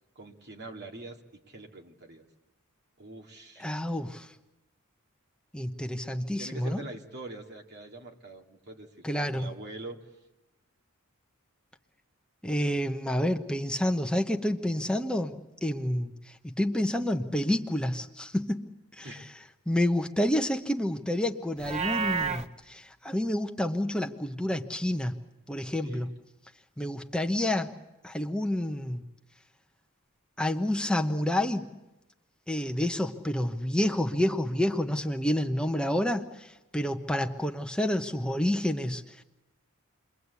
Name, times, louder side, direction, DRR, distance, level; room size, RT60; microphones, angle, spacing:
voice 1, 0.2-2.2 3.0-3.6 6.4-10.0 19.0-19.3 25.8-26.1, right 2 dB, 50° right, 1 dB, 2.5 m, -44 dB
voice 2, 3.6-4.3 5.5-6.8 9.0-9.5 12.4-18.7 19.0-19.3 19.7-25.1 25.5-26.1 26.8-27.7 28.0-29.0 30.4-31.7 32.5-39.2, left 1 dB, 5° left, 4 dB, 0.9 m, -29 dB
Livestock farm animals working animals, 21.6-22.5, right 5 dB, 30° right, 1.0 m, -30 dB
28.5 x 22.5 x 8.3 m, 1.0 s
head